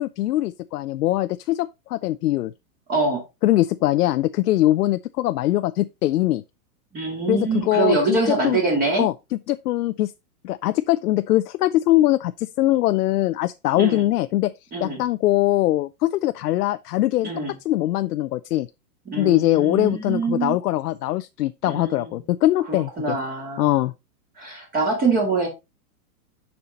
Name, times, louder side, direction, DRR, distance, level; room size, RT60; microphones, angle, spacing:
voice 1, 0.0-2.5 3.4-6.4 7.3-8.6 9.0-9.1 9.5-10.1 10.4-14.5 14.8-17.3 17.7-18.7 19.2-23.2 23.6-23.9, left 15 dB, 75° left, 0.6 m, -22 dB
voice 2, 2.9-3.2 6.9-9.1 13.8-14.0 14.7-15.0 17.2-17.5 19.1-20.6 21.7-22.2 22.7-23.7 24.4-25.5, right 3 dB, 20° right, 2.6 m, -24 dB
6.8 x 5.6 x 4.2 m
hypercardioid pair, 155°, 47 cm